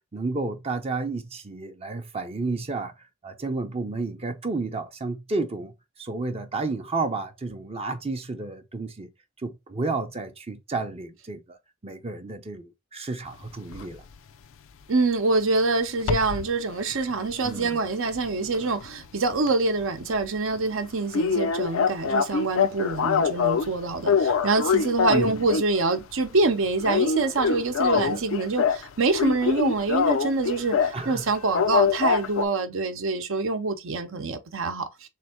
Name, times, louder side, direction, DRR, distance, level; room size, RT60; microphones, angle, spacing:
voice 1, 0.1-9.1 9.4-11.6 11.8-14.0 17.4-17.8 25.1-25.5 27.9-28.2 30.9-31.3, right 3 dB, 30° right, 0.6 m, -31 dB
sound 1, 13.7-13.9 16.0-16.5 16.9-19.0 19.3-19.5 19.8-19.9 20.2-20.3 20.6-20.7 21.1-23.7 24.0-25.8 26.1-26.4 26.8-28.9 29.1-31.0 31.5-32.5, left 6 dB, 65° left, 0.5 m, -24 dB
voice 2, 14.9-34.9, right 3 dB, 65° right, 0.8 m, -25 dB
3.5 x 3.3 x 4.4 m
head